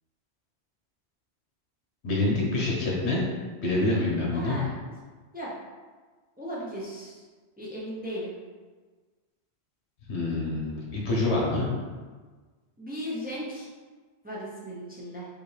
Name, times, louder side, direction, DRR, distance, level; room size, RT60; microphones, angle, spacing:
voice 1, 2.0-3.2 3.6-4.6 10.1-11.7, left 2 dB, 75° left, -4 dB, 1.3 m, -26 dB
voice 2, 4.3-4.7 5.3-5.6 6.4-7.3 7.6-8.3 12.8-13.7 14.2-15.3, equal, 10° right, -6 dB, 0.7 m, -36 dB
5.3 x 2.5 x 3.3 m, 1.4 s
omnidirectional pair, 1.1 m